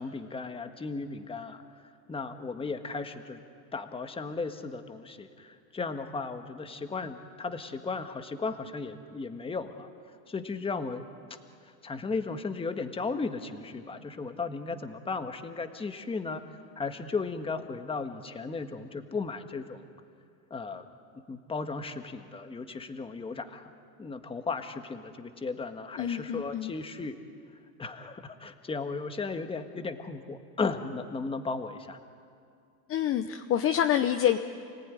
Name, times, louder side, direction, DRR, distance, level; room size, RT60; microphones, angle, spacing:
voice 1, 0.0-1.6 2.1-3.4 3.7-9.9 10.3-11.0 11.8-16.4 16.8-19.8 20.5-20.9 21.3-23.7 24.0-27.2 27.8-32.0, left 4 dB, 10° left, 7 dB, 1.6 m, -35 dB
voice 2, 26.0-26.7 32.9-34.4, left 10 dB, 30° left, 7 dB, 0.9 m, -27 dB
29.0 x 19.0 x 9.8 m, 2.4 s
supercardioid pair, 130°, 44 cm